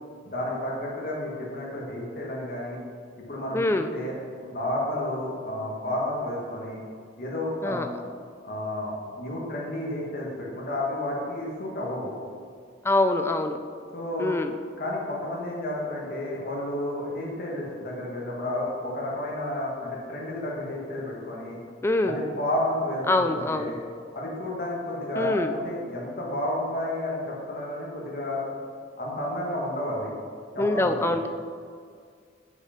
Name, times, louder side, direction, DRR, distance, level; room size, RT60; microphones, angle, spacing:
voice 1, 0.2-2.8 3.3-4.1 4.4-6.8 7.2-7.8 8.4-12.1 13.9-14.3 14.8-21.6 22.0-23.8 24.1-28.4 29.0-30.1 30.5-31.0, left 1 dB, 50° left, -3 dB, 1.7 m, -31 dB
voice 2, 3.5-3.9 7.6-7.9 12.8-13.6 14.2-14.6 21.8-22.2 23.1-23.7 25.2-25.5 30.6-31.3, left 2 dB, 15° left, 8 dB, 0.3 m, -24 dB
6.4 x 5.4 x 5.1 m, 2.1 s
head